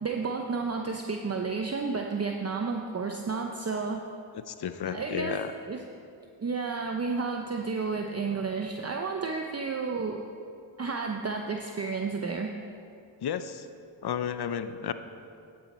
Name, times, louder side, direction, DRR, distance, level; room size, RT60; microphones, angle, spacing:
voice 1, 0.0-4.0 4.8-5.4 5.7-5.8 6.4-10.2 10.8-12.6, right 4 dB, 30° right, 2 dB, 0.7 m, -31 dB
voice 2, 4.3-5.5 13.2-13.7 14.0-14.9, left 8 dB, 50° left, 11 dB, 0.6 m, -32 dB
10.0 x 8.6 x 4.2 m, 2.5 s
cardioid pair, 55°, 49 cm